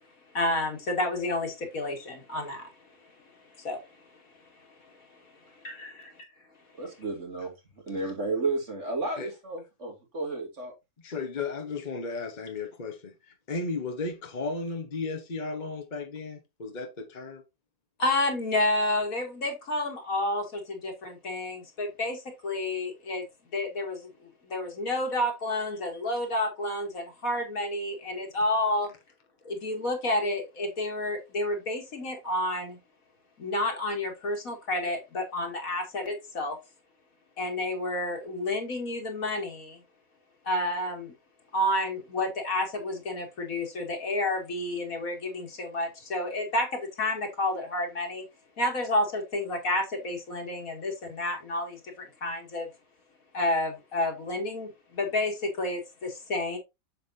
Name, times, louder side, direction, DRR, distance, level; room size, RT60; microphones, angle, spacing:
voice 1, 0.3-2.6 3.6-3.8 5.6-6.1 18.0-23.2 23.5-24.1 24.5-28.9 29.4-32.8 33.4-36.6 37.4-39.8 40.4-41.1 41.5-48.2 48.6-52.7 53.3-56.6, left 1 dB, 75° left, 2.7 m, -30 dB
voice 2, 6.8-7.5 7.9-10.7, right 3 dB, 55° right, 2.8 m, -32 dB
voice 3, 11.0-17.4, left 3 dB, 35° left, 1.1 m, -35 dB
7.7 x 7.2 x 2.7 m
omnidirectional pair, 1.5 m